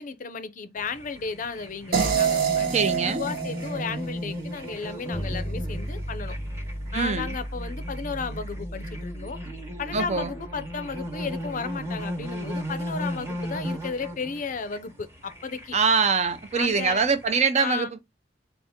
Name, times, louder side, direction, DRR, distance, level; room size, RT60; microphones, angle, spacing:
voice 1, 0.0-6.4 6.9-9.4 9.8-15.8 16.5-17.0 17.6-17.9, left 5 dB, 45° left, 0.5 m, -34 dB
sound 1, 0.8-17.4, equal, 15° right, 1.2 m, -37 dB
sound 2, 1.9-5.0, right 7 dB, 55° right, 1.1 m, -27 dB
voice 2, 2.7-3.2 6.9-7.4 9.9-10.3 15.7-18.0, right 5 dB, 40° right, 0.6 m, -23 dB
sound 3, 5.1-14.1, equal, ahead, 0.6 m, -37 dB
4.1 x 2.4 x 3.6 m
head